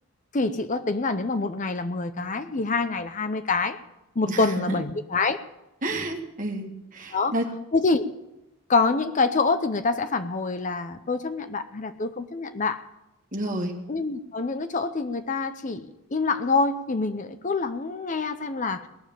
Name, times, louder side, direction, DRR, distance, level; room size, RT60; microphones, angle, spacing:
voice 1, 0.3-3.8 4.2-5.4 7.1-7.3 7.7-8.1 8.7-12.8 13.9-15.8 16.1-18.9, left 3 dB, 35° left, 10 dB, 0.6 m, -26 dB
voice 2, 4.3-4.7 5.8-7.5 13.3-13.8, right 1 dB, 40° right, 2 dB, 2.0 m, -30 dB
19.0 x 7.2 x 9.9 m, 0.95 s
head